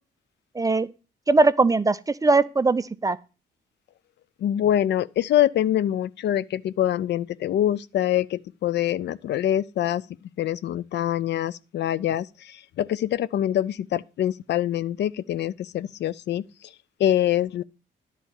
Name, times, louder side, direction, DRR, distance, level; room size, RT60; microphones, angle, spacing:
voice 1, 0.6-0.9 1.3-3.2, right 3 dB, 15° right, 0.5 m, -20 dB
voice 2, 4.4-10.0 10.4-16.4 17.0-17.6, left 11 dB, 60° left, 0.4 m, -25 dB
10.0 x 4.1 x 7.0 m
cardioid pair, 90°, 20 cm